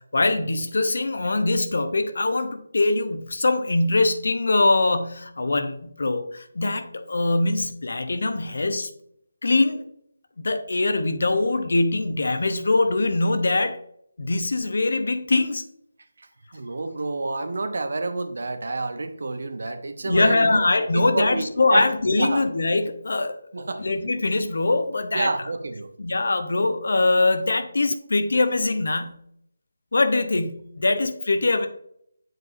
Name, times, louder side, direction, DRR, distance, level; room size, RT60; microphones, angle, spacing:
voice 1, 0.1-8.9 9.4-9.8 10.4-13.8 14.2-15.6 20.1-23.4 23.8-25.3 26.0-29.2 29.9-31.7, left 2 dB, 65° left, 8 dB, 0.8 m, -22 dB
voice 2, 16.2-22.4 23.5-23.8 25.1-25.9, right 3 dB, 60° right, 9 dB, 0.7 m, -29 dB
7.6 x 4.8 x 2.6 m, 0.70 s
figure-of-eight pair, 155°, 0 cm